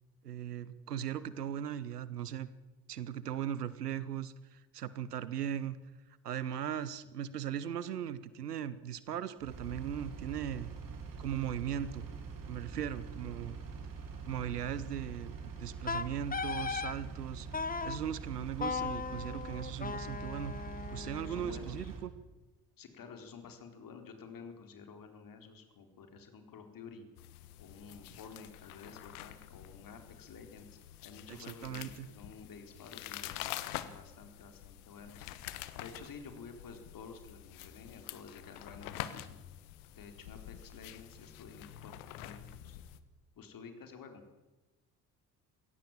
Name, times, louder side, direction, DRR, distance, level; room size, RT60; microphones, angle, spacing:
voice 1, 0.2-2.5 2.9-5.8 6.2-10.7 11.2-12.1 12.5-13.6 14.3-17.5 17.8-20.5 20.9-22.1 31.3-32.1, right 9 dB, 80° right, 17 dB, 1.0 m, -38 dB
Engine, 9.4-22.1, right 5 dB, 45° right, 4.2 m, -44 dB
Wind instrument woodwind instrument, 15.9-17.0 17.5-18.0 18.6-21.6, left 5 dB, 20° left, 1.2 m, -37 dB
voice 2, 21.2-21.9 22.8-27.1 27.6-35.3 35.8-39.4 39.9-42.8 43.4-44.4, left 5 dB, 45° left, 6 dB, 4.0 m, -51 dB
sound 1, 27.2-43.0, left 13 dB, 65° left, 1.3 m, -47 dB
22.0 x 17.0 x 7.5 m, 1.1 s
figure-of-eight pair, 50°, 46 cm